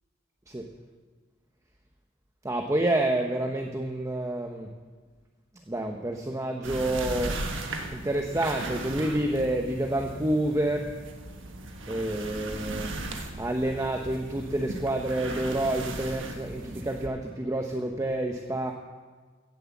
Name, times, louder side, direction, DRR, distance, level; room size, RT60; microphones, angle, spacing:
voice 1, 2.4-4.7 5.7-7.4 7.9-10.9 11.9-12.9 13.4-18.7, right 1 dB, 15° right, 3 dB, 0.9 m, -28 dB
sound 1, 6.6-17.1, right 2 dB, 75° right, 1.4 m, -37 dB
16.0 x 7.7 x 7.2 m, 1.5 s
head